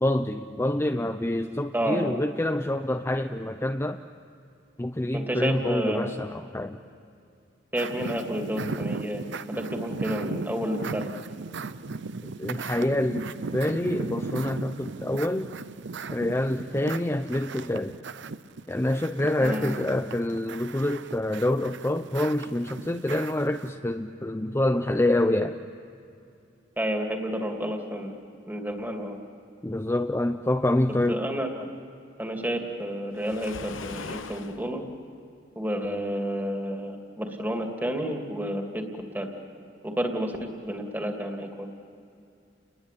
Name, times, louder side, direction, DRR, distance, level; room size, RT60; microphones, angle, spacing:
voice 1, 0.0-4.0 4.8-6.8 12.2-13.3 13.5-15.5 16.1-18.0 18.7-25.6 29.6-31.2, left 1 dB, 15° left, 6 dB, 0.6 m, -26 dB
voice 2, 1.7-2.1 5.1-6.1 7.7-9.2 9.5-11.1 19.4-19.9 26.8-28.2 28.5-29.2 31.1-31.7 32.2-34.8 35.6-38.8 39.1-39.3 39.8-41.7, equal, 10° right, 2 dB, 2.8 m, -30 dB
sound 1, 7.8-23.7, right 4 dB, 65° right, 0.7 m, -37 dB
Waves surf, 33.1-34.6, left 4 dB, 80° left, 1.1 m, -39 dB
30.0 x 21.0 x 8.5 m, 2.5 s
head